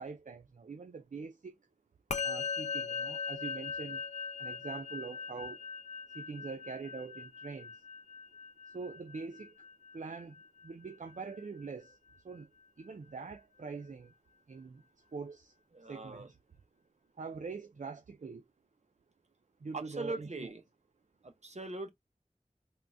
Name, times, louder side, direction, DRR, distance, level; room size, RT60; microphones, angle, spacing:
voice 1, 0.0-1.6 2.2-4.1 4.4-5.6 6.1-7.8 8.7-9.7 9.9-10.4 10.6-12.0 12.2-12.5 12.8-14.1 14.5-14.8 15.1-15.5 15.9-16.4 17.1-18.4 19.6-20.5, right 4 dB, 75° right, 0.4 m, -44 dB
Musical instrument, 2.1-11.6, left 5 dB, 65° left, 0.6 m, -40 dB
voice 2, 15.7-16.3 19.7-20.6 21.2-21.9, right 3 dB, 60° right, 0.8 m, -40 dB
3.5 x 2.2 x 2.6 m
wide cardioid pair, 40°, 13 cm